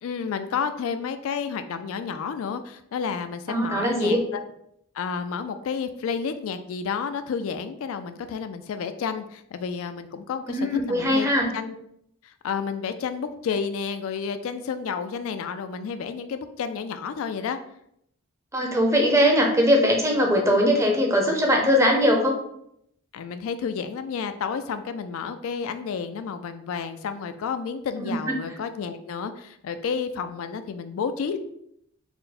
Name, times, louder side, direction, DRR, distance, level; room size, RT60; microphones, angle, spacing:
voice 1, 0.0-4.4 4.9-11.3 11.5-11.8 12.2-17.6 23.1-31.4, left 6 dB, 65° left, 9 dB, 0.3 m, -31 dB
voice 2, 3.5-4.2 10.5-11.5 18.5-22.4 28.0-28.4, equal, 15° right, 1 dB, 0.6 m, -21 dB
4.3 x 2.1 x 4.1 m, 0.73 s
head